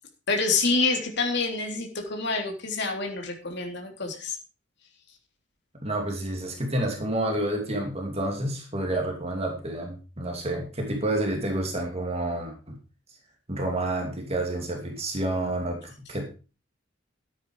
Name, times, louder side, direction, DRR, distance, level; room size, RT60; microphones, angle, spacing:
voice 1, 0.3-4.4, left 3 dB, 65° left, 3 dB, 3.3 m, -27 dB
voice 2, 5.8-12.8 13.5-16.3, right 1 dB, 35° right, 1 dB, 2.7 m, -29 dB
13.5 x 9.3 x 4.9 m, 0.35 s
head